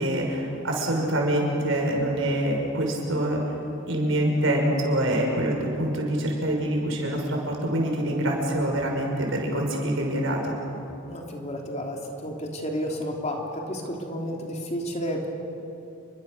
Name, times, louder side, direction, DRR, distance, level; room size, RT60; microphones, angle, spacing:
voice 1, 0.0-3.4 3.9-10.5, right 1 dB, 75° right, 0 dB, 6.1 m, -25 dB
voice 2, 11.1-15.3, equal, 35° left, 1 dB, 3.3 m, -31 dB
29.5 x 23.5 x 6.8 m, 2.9 s
head